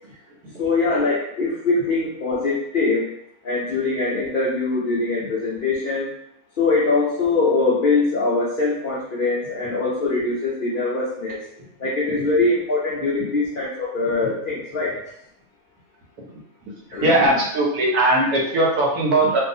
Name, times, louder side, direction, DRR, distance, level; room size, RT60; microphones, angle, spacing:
voice 1, 0.6-3.1 3.4-6.1 6.6-11.4 11.8-15.0 16.9-17.3, left 3 dB, 80° left, -6 dB, 0.4 m, -22 dB
voice 2, 17.0-19.4, right 1 dB, 90° right, -2 dB, 1.3 m, -19 dB
2.6 x 2.3 x 2.6 m, 0.74 s
omnidirectional pair, 1.6 m